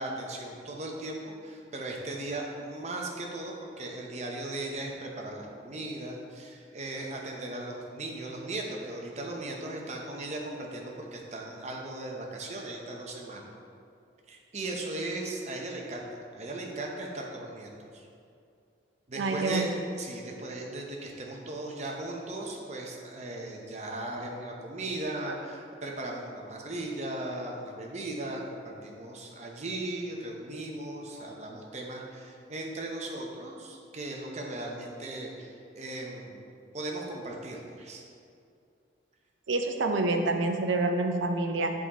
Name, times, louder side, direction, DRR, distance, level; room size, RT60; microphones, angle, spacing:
voice 1, 0.0-13.5 14.3-18.1 19.1-19.7 20.0-36.4 36.7-38.0, right 2 dB, 35° right, 0 dB, 0.7 m, -37 dB
voice 2, 19.2-19.7 39.5-41.7, right 2 dB, 90° right, 5 dB, 0.6 m, -27 dB
7.2 x 3.7 x 4.1 m, 2.4 s
head